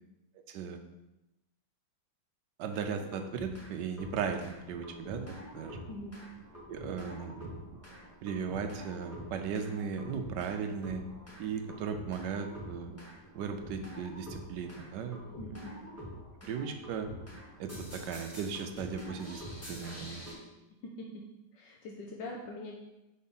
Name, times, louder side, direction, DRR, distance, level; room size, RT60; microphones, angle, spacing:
voice 1, 0.5-0.8 2.6-5.8 6.7-7.6 8.2-11.0 11.4-12.9 13.3-15.2 16.4-17.1 17.6-19.4 19.7-20.2, right 6 dB, 75° right, 6 dB, 1.2 m, -37 dB
sound 1, 2.7-3.7 4.0-20.3, equal, 10° left, 1.2 m, -46 dB
voice 2, 5.9-6.2 15.3-15.8 20.8-21.3 21.5-22.8, left 1 dB, 80° left, -1 dB, 1.3 m, -43 dB
4.3 x 4.3 x 5.3 m, 0.96 s
omnidirectional pair, 1.9 m